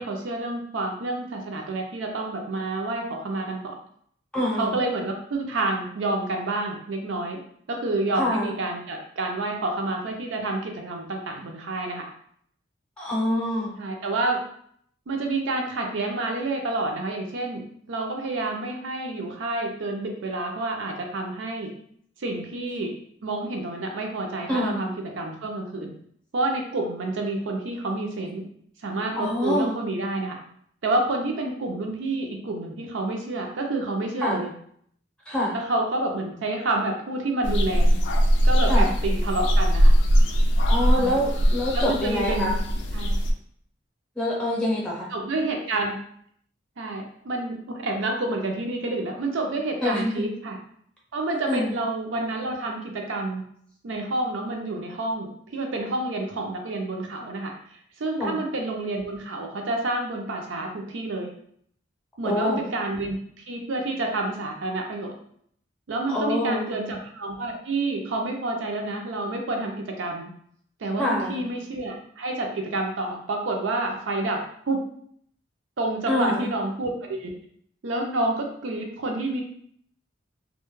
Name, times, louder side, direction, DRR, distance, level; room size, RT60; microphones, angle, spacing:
voice 1, 0.0-3.7 4.5-7.4 7.7-12.0 13.8-14.4 15.1-21.7 22.2-22.9 23.2-25.9 26.3-28.4 28.8-30.4 30.8-34.5 35.5-38.0 38.4-39.9 40.9-41.2 41.7-42.5 42.9-43.1 45.1-45.9 46.8-50.6 51.1-53.4 53.8-61.3 62.2-65.1 65.9-70.3 70.8-74.4 74.7-74.8 75.8-77.3 77.8-79.4, right 2 dB, 80° right, 2 dB, 0.5 m, -29 dB
voice 2, 4.3-4.7 8.1-8.5 13.0-13.7 24.5-24.8 29.1-29.7 34.2-34.4 35.3-35.6 38.7-38.9 40.7-42.5 44.2-45.1 49.8-50.1 51.5-51.7 58.2-58.4 62.2-62.6 66.1-66.8 71.0-71.4 76.1-76.5, left 1 dB, 5° left, -5 dB, 0.6 m, -25 dB
sound 1, 37.4-43.3, equal, 70° left, 0.3 m, -20 dB
2.2 x 2.1 x 3.0 m, 0.65 s
head